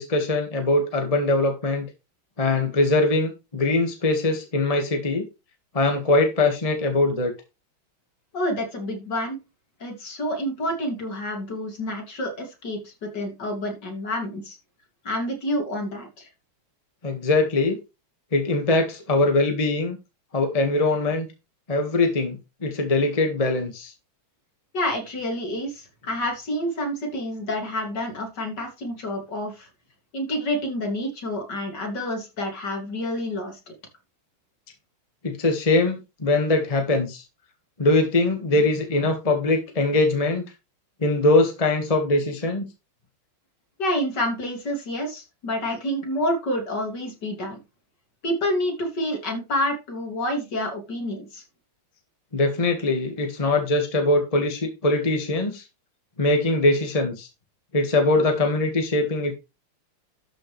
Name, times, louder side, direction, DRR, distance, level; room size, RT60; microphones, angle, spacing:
voice 1, 0.0-1.9 2.4-5.2 5.7-7.3 17.0-17.8 18.3-20.0 20.3-21.3 21.7-22.4 22.6-23.9 35.2-37.2 37.8-40.4 41.0-42.6 52.3-55.6 56.2-57.3 57.7-59.3, left 2 dB, 20° left, 4 dB, 1.7 m, -22 dB
voice 2, 8.3-9.4 9.8-14.6 15.0-16.3 24.7-29.7 30.1-33.6 43.8-47.6 48.2-51.4, left 1 dB, 50° left, 2 dB, 3.3 m, -28 dB
12.5 x 6.2 x 3.3 m, 0.26 s
omnidirectional pair, 2.3 m